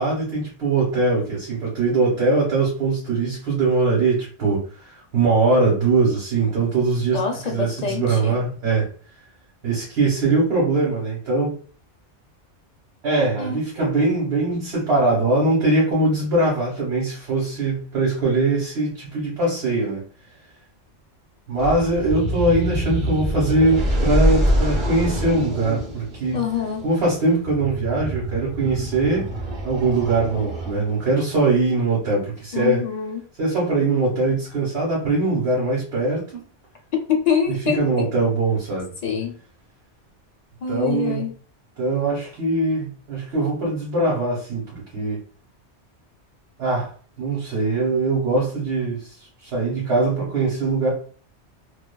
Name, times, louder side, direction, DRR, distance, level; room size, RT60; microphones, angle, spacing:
voice 1, 0.0-7.2 7.5-8.9 9.6-11.6 13.0-20.0 21.5-26.4 26.8-29.3 29.6-32.8 33.4-36.4 37.5-38.9 40.7-41.2 41.8-45.2 46.6-46.9 47.2-49.1 49.4-50.9, right 3 dB, 65° right, -5 dB, 1.2 m, -21 dB
voice 2, 7.1-8.3 13.4-13.6 26.3-26.9 32.5-33.2 37.1-38.1 39.0-39.4 40.6-41.3, left 7 dB, 45° left, 2 dB, 0.6 m, -25 dB
sound 1, 21.6-31.1, equal, 50° right, 0.9 m, -25 dB
2.4 x 2.4 x 2.2 m, 0.41 s
omnidirectional pair, 1.2 m